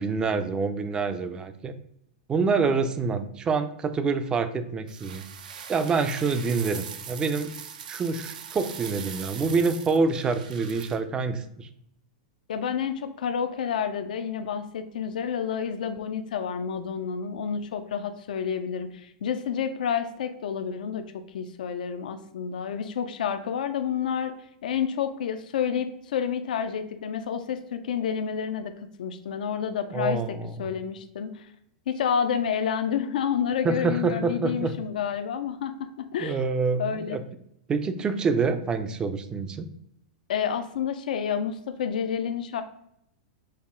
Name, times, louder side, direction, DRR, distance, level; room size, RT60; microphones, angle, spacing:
voice 1, 0.0-1.7 2.3-5.2 5.7-7.5 7.9-11.7 29.9-30.7 33.6-34.7 36.2-37.2 37.7-39.7, right 4 dB, 20° right, 10 dB, 0.4 m, -26 dB
sound 1, 4.9-11.0, right 7 dB, 80° right, 0.5 m, -41 dB
voice 2, 12.5-24.3 24.6-28.7 29.0-31.5 31.9-36.4 36.8-37.2 40.3-42.6, left 7 dB, 80° left, 8 dB, 0.4 m, -29 dB
5.4 x 2.1 x 3.6 m, 0.75 s
hypercardioid pair, 135°, 4 cm